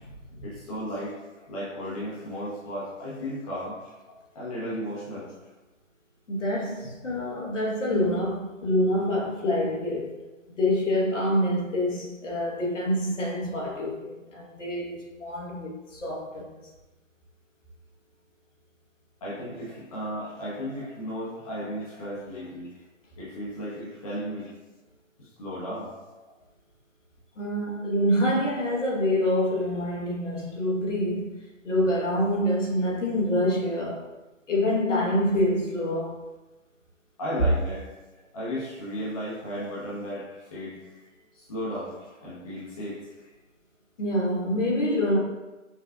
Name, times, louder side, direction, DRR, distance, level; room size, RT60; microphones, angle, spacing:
voice 1, 0.4-1.2 1.5-3.8 4.3-5.3 19.2-22.7 23.2-24.5 25.2-25.9 37.2-37.9 38.3-40.3 40.5-40.8 41.3-41.9 42.2-43.0, equal, 25° left, 0.8 m, -34 dB
voice 2, 6.3-10.2 10.5-16.5 27.4-31.3 31.6-34.0 34.5-36.2 44.0-45.2, left 1 dB, 65° left, 1.2 m, -26 dB
5.7 x 2.4 x 2.3 m
figure-of-eight pair, 155°, 40 cm